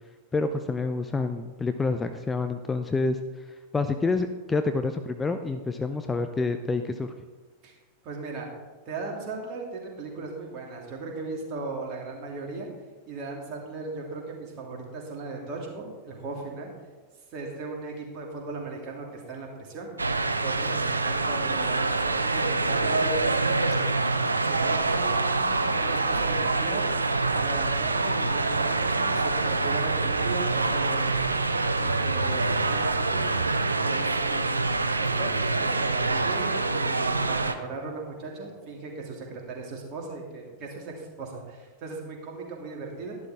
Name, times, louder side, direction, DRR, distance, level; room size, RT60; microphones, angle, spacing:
voice 1, 0.3-3.2 3.7-7.1, left 3 dB, 15° left, 8 dB, 0.5 m, -28 dB
voice 2, 8.0-8.5 8.9-12.7 13.1-16.7 17.3-19.9 20.4-23.4 24.4-26.8 27.3-31.3 31.8-33.3 33.8-43.2, right 3 dB, 40° right, -1 dB, 2.7 m, -37 dB
sound 1, 20.0-37.5, right 3 dB, 80° right, 0.5 m, -25 dB
12.0 x 11.5 x 3.6 m, 1.4 s
figure-of-eight pair, 90°, 0 cm